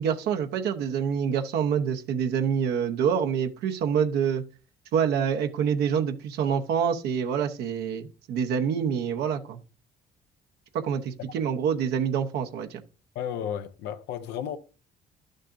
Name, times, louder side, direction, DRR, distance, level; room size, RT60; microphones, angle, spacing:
voice 1, 0.0-4.4 4.9-9.6 10.7-12.8, right 7 dB, 75° right, 0.9 m, -26 dB
voice 2, 13.1-14.6, left 9 dB, 80° left, 0.6 m, -33 dB
11.5 x 6.4 x 2.6 m
cardioid pair, 110°, 17 cm